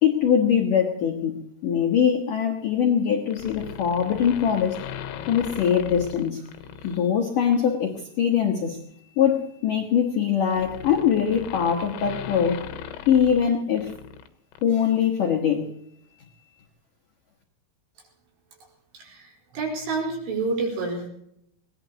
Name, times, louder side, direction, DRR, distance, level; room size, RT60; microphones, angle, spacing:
voice 1, 0.0-1.4 1.6-4.8 5.3-6.5 6.8-8.8 9.2-12.7 13.1-13.9 14.6-15.7, left 8 dB, 65° left, 2 dB, 2.1 m, -22 dB
sound 1, 3.3-7.0 7.5-7.7 8.9-14.3 14.5-14.6, left 8 dB, 85° left, 3.8 m, -39 dB
voice 2, 18.9-21.1, right 3 dB, 60° right, -1 dB, 7.0 m, -29 dB
23.0 x 18.5 x 3.0 m, 0.75 s
omnidirectional pair, 5.8 m